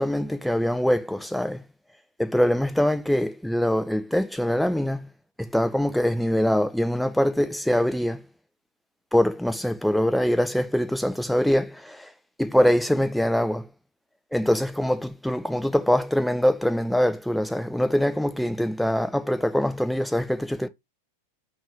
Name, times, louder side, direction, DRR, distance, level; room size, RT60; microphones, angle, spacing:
voice 1, 0.0-1.6 2.2-5.1 5.4-8.2 9.1-12.1 12.4-13.6 14.3-20.7, equal, ahead, 0.5 m, -23 dB
5.3 x 2.5 x 3.4 m
figure-of-eight pair, 90°, 0 cm